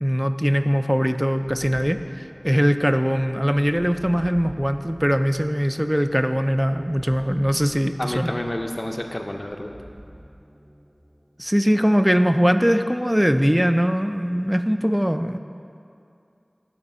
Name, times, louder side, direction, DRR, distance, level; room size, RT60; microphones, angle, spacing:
voice 1, 0.0-8.3 11.4-15.4, equal, 10° right, 9 dB, 0.3 m, -21 dB
sound 1, 1.1-12.2, equal, 40° right, 0.8 m, -46 dB
voice 2, 8.0-9.7, left 1 dB, 45° left, 4 dB, 0.5 m, -29 dB
8.6 x 4.2 x 5.4 m, 2.6 s
wide cardioid pair, 45°, 0 cm